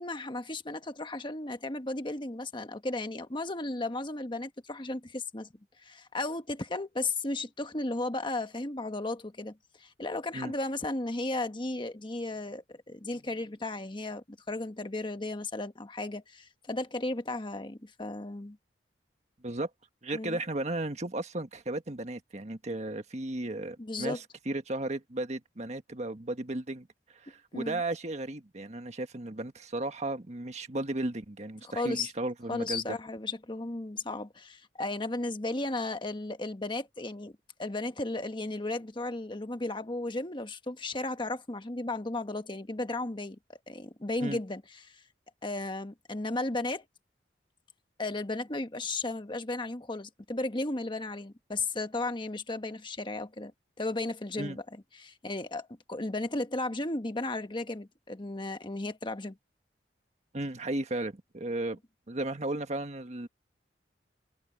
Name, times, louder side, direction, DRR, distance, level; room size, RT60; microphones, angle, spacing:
voice 1, 0.0-5.5 5.8-18.6 20.1-20.4 23.8-24.2 27.5-27.8 31.6-32.1 32.5-37.3 37.6-43.4 43.7-45.0 45.4-46.8 48.0-53.5 53.8-59.4, left 2 dB, 30° left, 1.3 m, -35 dB
voice 2, 20.0-26.9 27.1-33.0 44.2-44.4 54.4-54.6 60.3-61.8 62.1-63.3, right 2 dB, 40° right, 1.5 m, -35 dB
head